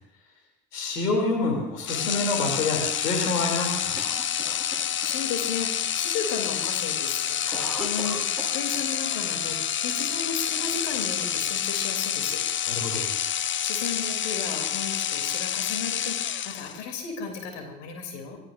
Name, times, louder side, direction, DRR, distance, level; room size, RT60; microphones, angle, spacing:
voice 1, 0.7-4.0 12.7-13.1, left 3 dB, 80° left, 1 dB, 3.2 m, -27 dB
sound 1, 1.9-16.9, left 9 dB, 25° left, 0.6 m, -28 dB
Cough, 4.0-5.4 5.8-5.9 6.2-6.6 6.9-9.2 9.5-9.6 10.3-11.1, right 1 dB, ahead, 5.9 m, -40 dB
voice 2, 5.0-12.4 13.6-18.4, left 5 dB, 65° left, 3 dB, 3.1 m, -34 dB
26.0 x 18.0 x 2.6 m, 0.89 s
figure-of-eight pair, 50°, 47 cm